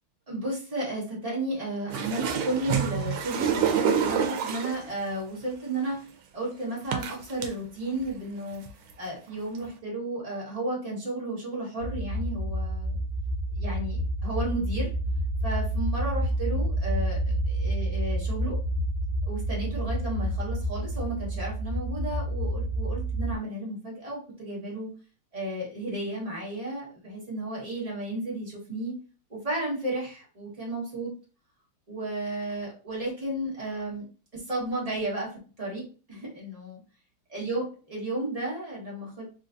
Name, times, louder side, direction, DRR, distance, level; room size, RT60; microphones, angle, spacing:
voice 1, 0.3-6.0 6.3-8.6 9.0-13.0 13.5-14.9 15.4-18.6 19.3-24.9 25.3-28.9 29.3-31.1 31.9-34.0 34.3-36.8 37.3-37.6 37.9-39.2, right 1 dB, 25° right, -5 dB, 1.0 m, -33 dB
sound 1, 1.9-4.9 5.9-6.0 6.9-7.5 8.0-8.1 8.5-8.9 9.6-9.7, right 7 dB, 85° right, 1.5 m, -27 dB
sound 2, 11.8-23.3, right 1 dB, 60° right, 1.2 m, -29 dB
3.9 x 2.5 x 2.5 m, 0.37 s
omnidirectional pair, 2.3 m